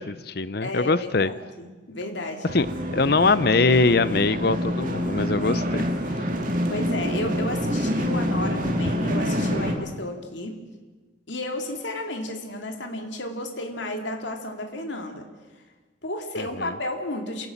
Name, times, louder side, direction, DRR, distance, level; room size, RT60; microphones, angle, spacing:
voice 1, 0.0-1.3 2.4-2.7 2.9-5.8 6.2-6.3 16.4-16.7, left 3 dB, 55° left, 16 dB, 0.7 m, -22 dB
voice 2, 0.6-2.5 6.7-10.6 11.3-15.3 16.0-17.5, left 1 dB, 70° left, 4 dB, 2.6 m, -32 dB
sound 1, 2.5-9.7, equal, 45° right, 2.7 m, -26 dB
27.5 x 17.5 x 7.3 m, 1.3 s
head